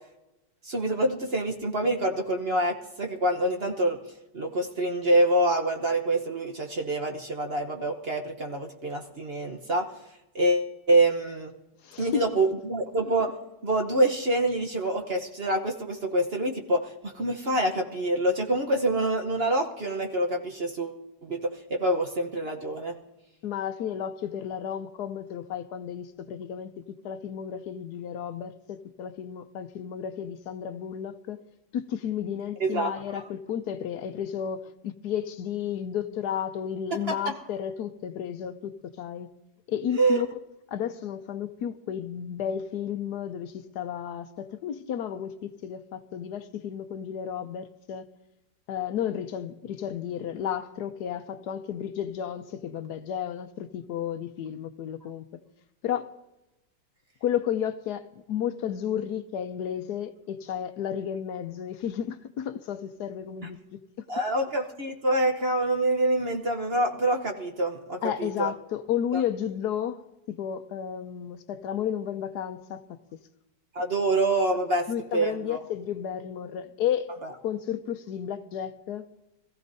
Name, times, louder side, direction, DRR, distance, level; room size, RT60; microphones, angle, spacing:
voice 1, 0.6-4.0 4.3-9.9 10.3-11.5 12.0-13.3 13.6-23.0 32.6-32.9 37.1-37.2 39.9-40.2 64.1-68.5 69.1-69.2 73.7-75.6, right 1 dB, 40° right, 1.1 m, -26 dB
voice 2, 11.8-12.2 23.4-31.4 31.7-39.3 39.7-40.3 40.7-48.1 48.7-55.2 55.8-56.2 57.2-64.0 68.0-73.2 74.9-79.1, left 9 dB, 70° left, 1.2 m, -32 dB
25.0 x 15.0 x 2.7 m
omnidirectional pair, 1.9 m